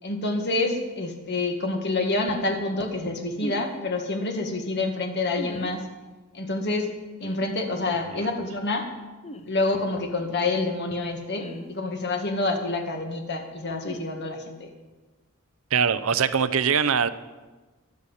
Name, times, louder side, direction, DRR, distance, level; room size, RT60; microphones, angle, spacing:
voice 1, 0.0-5.8 6.3-6.9 7.2-8.9 9.4-14.7, left 2 dB, 50° left, 4 dB, 1.9 m, -27 dB
sound 1, 3.4-3.7 5.4-5.7 7.2-7.5 9.2-9.5 11.4-11.7 13.8-14.0, right 1 dB, 30° left, 0.8 m, -37 dB
voice 2, 15.7-17.1, right 6 dB, 75° right, 13 dB, 0.7 m, -22 dB
22.5 x 8.2 x 5.6 m, 1.2 s
head